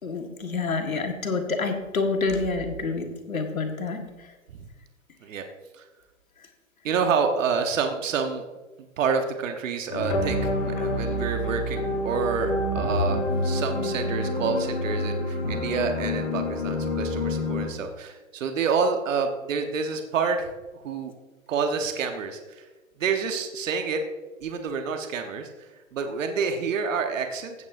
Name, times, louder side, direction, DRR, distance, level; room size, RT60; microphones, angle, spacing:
voice 1, 0.0-4.0, left 3 dB, 85° left, 5 dB, 1.7 m, -28 dB
voice 2, 6.8-8.4 9.0-21.1 21.5-22.6 23.0-24.0 24.4-27.5, right 5 dB, 70° right, 5 dB, 1.2 m, -28 dB
sound 1, 9.9-17.7, left 1 dB, 45° left, 3.7 m, -27 dB
15.5 x 8.5 x 2.6 m, 1.2 s
hypercardioid pair, 120°, 40 cm